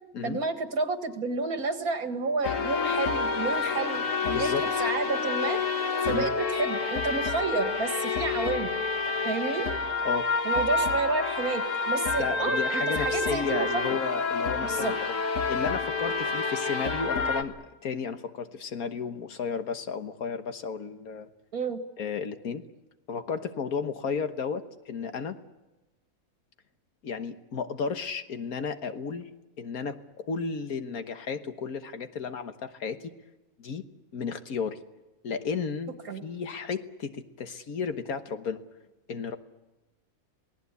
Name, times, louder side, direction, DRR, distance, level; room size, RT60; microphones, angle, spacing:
voice 1, 0.2-5.6 6.0-8.9 9.2-9.7 10.4-14.0 14.6-14.9 21.5-21.8 36.1-36.2, right 4 dB, 85° right, 6 dB, 2.4 m, -30 dB
sound 1, 2.4-17.4, left 4 dB, 60° left, 1.8 m, -28 dB
voice 2, 4.3-4.6 6.1-6.3 10.1-10.3 12.2-15.2 15.5-17.5 17.8-21.3 22.0-22.6 23.1-25.4 27.0-29.3 29.6-33.1 33.6-33.9 34.1-34.8 35.2-35.9 36.2-38.6 39.1-39.4, left 5 dB, 90° left, 8 dB, 1.7 m, -33 dB
27.5 x 18.5 x 8.3 m, 1.1 s
omnidirectional pair, 1.5 m